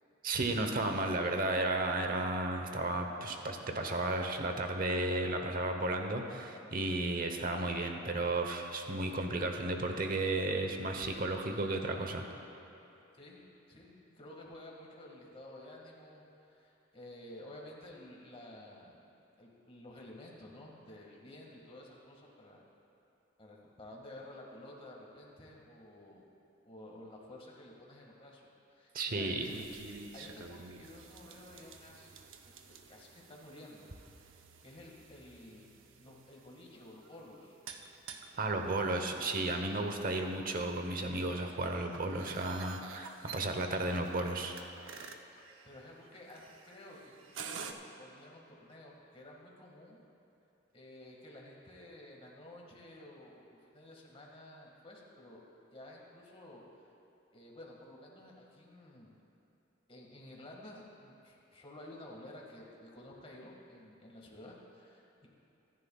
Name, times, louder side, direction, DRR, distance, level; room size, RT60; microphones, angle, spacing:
voice 1, 0.2-12.2 28.9-29.5 38.4-44.5, right 2 dB, 50° right, 4 dB, 1.0 m, -33 dB
voice 2, 0.9-1.5 13.2-19.0 19.4-22.6 23.4-26.3 26.6-29.6 30.1-32.2 32.6-33.9 34.6-37.6 38.3-38.8 45.6-50.0 50.7-55.4 55.7-56.6 57.3-59.2 59.9-65.3, left 1 dB, 30° left, -2 dB, 1.9 m, -52 dB
sound 1, 29.4-47.7, right 5 dB, 85° right, 0.7 m, -51 dB
24.5 x 10.5 x 2.4 m, 2.9 s
head